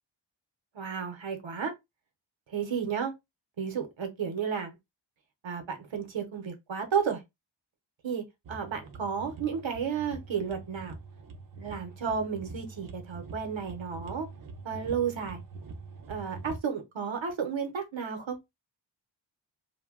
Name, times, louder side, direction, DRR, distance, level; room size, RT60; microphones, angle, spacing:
voice 1, 0.7-1.7 2.5-3.1 3.6-4.8 5.4-7.2 8.0-11.0 11.6-14.3 14.6-15.4 16.1-18.4, right 6 dB, 80° right, 0.7 m, -32 dB
sound 1, 8.5-16.6, right 3 dB, 50° right, 0.4 m, -44 dB
2.6 x 2.1 x 2.3 m
wide cardioid pair, 65°, 46 cm